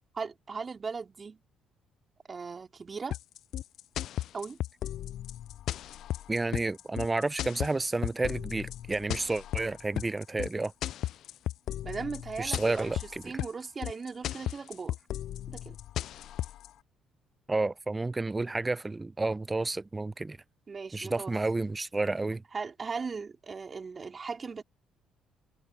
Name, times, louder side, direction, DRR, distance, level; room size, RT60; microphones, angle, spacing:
voice 1, 0.2-1.4 2.3-3.2 4.3-4.6 11.8-12.9 13.2-15.0 15.5-15.8 20.7-21.4 22.5-24.6, right 5 dB, 35° right, 3.9 m, -38 dB
sound 1, 3.1-16.7, left 12 dB, 70° left, 0.3 m, -35 dB
voice 2, 6.3-10.7 12.4-13.3 17.5-20.4 20.9-22.4, right 2 dB, 20° right, 0.6 m, -31 dB
supercardioid pair, 70°, 0 cm